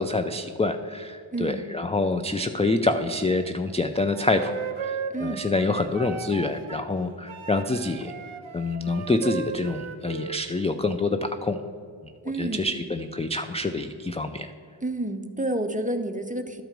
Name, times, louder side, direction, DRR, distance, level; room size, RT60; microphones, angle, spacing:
voice 1, 0.0-8.1 8.5-11.6 12.4-14.5, left 2 dB, 15° left, 8 dB, 0.3 m, -26 dB
voice 2, 1.3-1.6 5.1-5.4 12.2-12.7 14.8-16.6, right 1 dB, 15° right, 7 dB, 0.6 m, -29 dB
Wind instrument woodwind instrument, 4.1-6.9 7.3-10.4, right 6 dB, 80° right, 0.6 m, -36 dB
12.5 x 4.6 x 5.2 m, 2.2 s
wide cardioid pair, 55°, 47 cm